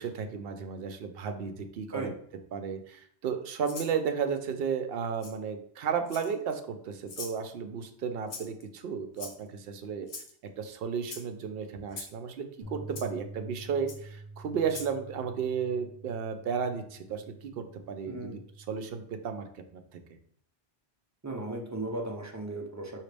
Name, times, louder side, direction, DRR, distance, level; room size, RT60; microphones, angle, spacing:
voice 1, 0.0-2.1 2.5-10.1 10.6-18.4 18.7-20.0, right 6 dB, 65° right, 7 dB, 0.7 m, -33 dB
Rattle (instrument), 3.6-3.9 5.2-5.3 6.1-6.5 7.1-7.4 8.3-8.6 9.2-9.6 10.1-10.3 11.0-11.2 11.9-12.1 13.0-13.1 13.9-14.0 14.7-14.9, left 4 dB, 60° left, 1.0 m, -42 dB
sound 1, 12.6-18.9, right 2 dB, 15° left, 1.0 m, -47 dB
voice 2, 18.0-18.4 21.2-23.0, right 2 dB, 25° right, 1 dB, 0.3 m, -36 dB
4.9 x 2.9 x 3.3 m, 0.63 s
omnidirectional pair, 1.2 m